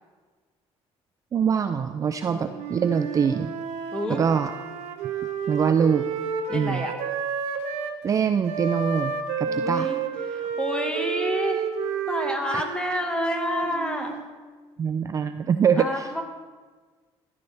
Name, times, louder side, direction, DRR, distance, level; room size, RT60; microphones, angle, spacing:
voice 1, 1.3-3.5 4.1-4.5 5.5-6.1 6.5-6.9 8.0-9.9 12.5-12.6 14.8-16.1, right 7 dB, 30° right, 9 dB, 0.4 m, -24 dB
voice 2, 2.3-2.6 3.9-4.2 6.5-6.9 9.5-11.6 12.1-14.2 15.8-16.2, left 1 dB, 10° left, 3 dB, 1.5 m, -29 dB
Wind instrument woodwind instrument, 2.5-8.0 8.4-14.3, right 6 dB, 80° right, 1.2 m, -30 dB
14.5 x 12.0 x 3.4 m, 1.4 s
cardioid pair, 135°, 11 cm